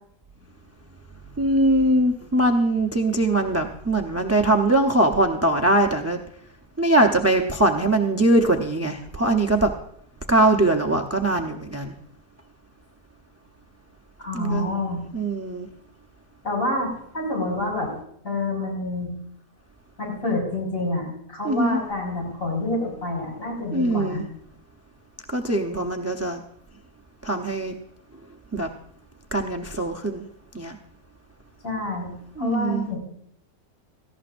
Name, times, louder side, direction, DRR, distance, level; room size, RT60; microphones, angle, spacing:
voice 1, 1.4-6.2 6.8-9.7 10.3-11.9 14.3-14.7 15.1-15.7 21.4-21.8 23.7-24.2 25.3-26.4 27.2-27.7 28.5-28.7 29.3-30.3 30.5-30.8 32.4-32.8, right 1 dB, 25° right, 4 dB, 0.3 m, -21 dB
voice 2, 14.2-15.0 16.4-17.9 18.2-19.1 20.0-24.2 31.6-32.1 32.4-33.0, left 2 dB, 55° left, -1 dB, 5.8 m, -27 dB
17.5 x 14.5 x 2.6 m, 0.70 s
omnidirectional pair, 1.7 m